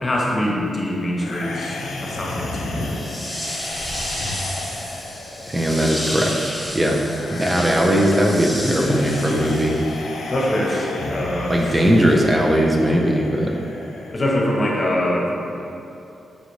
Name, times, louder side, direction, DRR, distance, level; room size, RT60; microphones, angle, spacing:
voice 1, 0.0-3.0 6.8-6.9 8.5-9.6 10.3-11.5 14.1-15.3, left 1 dB, 40° left, -3 dB, 0.8 m, -24 dB
sound 1, 1.2-14.2, left 2 dB, 80° left, 0.4 m, -33 dB
sound 2, 2.8-10.1, equal, ahead, 1.0 m, -32 dB
voice 2, 5.5-7.0 7.3-9.7 11.5-13.5, equal, 20° right, -1 dB, 0.4 m, -19 dB
5.1 x 2.4 x 3.1 m, 2.8 s
supercardioid pair, 55°, 0 cm